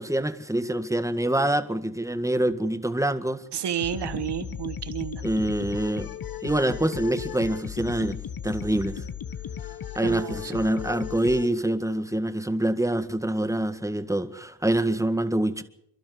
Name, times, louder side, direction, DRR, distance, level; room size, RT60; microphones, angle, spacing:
voice 1, 0.0-3.4 5.2-6.1 6.4-8.2 8.4-9.0 10.0-15.6, right 1 dB, 5° right, 1.8 m, -25 dB
voice 2, 3.5-5.2 10.0-10.5, right 10 dB, 70° right, 1.4 m, -31 dB
sound 1, 3.8-11.5, left 9 dB, 55° left, 1.1 m, -36 dB
28.0 x 12.0 x 7.9 m
cardioid pair, 65°, 42 cm